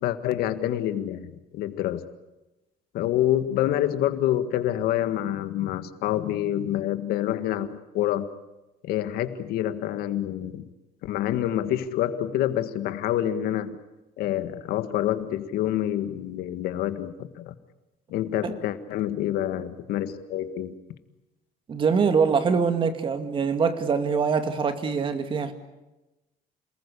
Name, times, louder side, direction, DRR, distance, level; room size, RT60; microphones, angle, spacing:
voice 1, 0.0-2.1 2.9-8.3 8.8-10.7 11.0-13.8 14.2-17.5 18.1-20.7, left 12 dB, 85° left, 11 dB, 1.8 m, -27 dB
voice 2, 21.7-25.5, right 5 dB, 35° right, 8 dB, 2.2 m, -24 dB
28.0 x 20.0 x 8.5 m, 1.0 s
cardioid pair, 160°, 16 cm